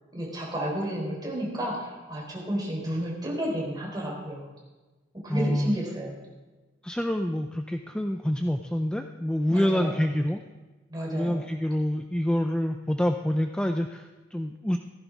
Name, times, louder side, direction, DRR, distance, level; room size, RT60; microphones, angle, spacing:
voice 1, 0.1-4.5 5.2-6.1 9.5-9.9 10.9-11.4, equal, 20° right, -3 dB, 3.9 m, -31 dB
voice 2, 5.3-5.8 6.8-10.4 11.1-14.8, equal, 5° left, 5 dB, 0.4 m, -27 dB
16.0 x 14.5 x 3.5 m, 1.2 s
head